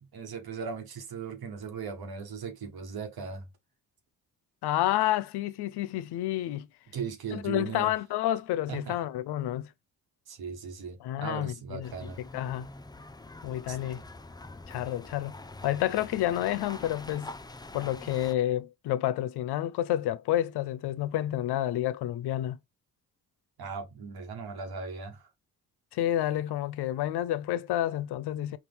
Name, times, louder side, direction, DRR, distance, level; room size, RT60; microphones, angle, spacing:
voice 1, 0.0-3.5 6.9-7.9 8.7-9.0 10.3-12.2 13.7-14.0 23.6-25.3, right 5 dB, 70° right, 1.2 m, -38 dB
voice 2, 4.6-6.7 7.3-9.7 11.0-12.7 13.4-14.0 14.7-15.3 15.6-17.3 17.7-22.6 25.9-28.6, left 13 dB, 80° left, 0.5 m, -29 dB
sound 1, 11.8-18.3, left 2 dB, 10° left, 0.5 m, -45 dB
4.2 x 2.4 x 3.3 m
supercardioid pair, 50°, 39 cm